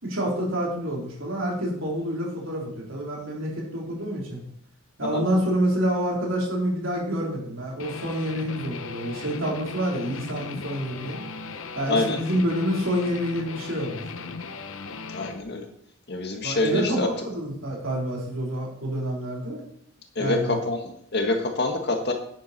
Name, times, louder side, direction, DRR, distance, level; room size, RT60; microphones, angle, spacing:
voice 1, 0.0-4.4 5.0-11.2 11.8-14.0 16.4-19.6 20.2-20.6, equal, 70° right, -2 dB, 3.6 m, -27 dB
Guitar, 7.8-15.4, left 4 dB, 70° left, 0.8 m, -37 dB
voice 2, 15.1-15.7 16.1-17.1 20.1-22.1, left 2 dB, 55° left, 4 dB, 1.5 m, -26 dB
9.6 x 9.5 x 4.2 m, 0.67 s
head